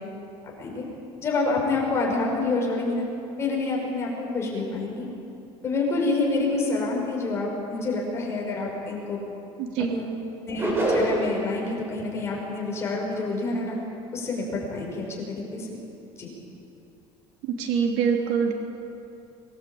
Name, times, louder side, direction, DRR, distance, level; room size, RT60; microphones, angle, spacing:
voice 1, 1.2-3.0 3.4-5.1 5.6-9.2 9.9-10.1 10.5-13.8 14.1-15.7 16.2-16.3, left 3 dB, 25° left, -2 dB, 6.6 m, -27 dB
voice 2, 9.6-10.0 17.4-18.5, right 6 dB, 85° right, 1 dB, 3.3 m, -24 dB
sound 1, 10.6-11.5, right 1 dB, 20° right, 5.3 m, -24 dB
26.0 x 19.5 x 8.8 m, 2.7 s
cardioid pair, 155°, 11 cm